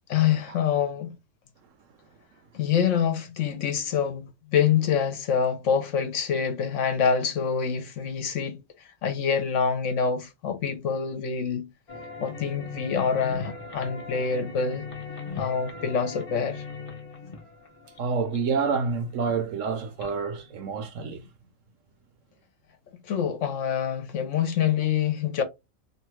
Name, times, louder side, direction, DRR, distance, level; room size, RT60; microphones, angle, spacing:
voice 1, 0.1-1.2 2.5-8.6 9.0-11.7 12.2-14.9 15.4-16.6 23.1-25.4, left 7 dB, 65° left, 0.9 m, -26 dB
sound 1, 11.9-20.8, left 4 dB, 40° left, 0.4 m, -40 dB
voice 2, 18.0-21.3, right 5 dB, 70° right, 0.9 m, -28 dB
2.7 x 2.3 x 3.0 m
omnidirectional pair, 1.5 m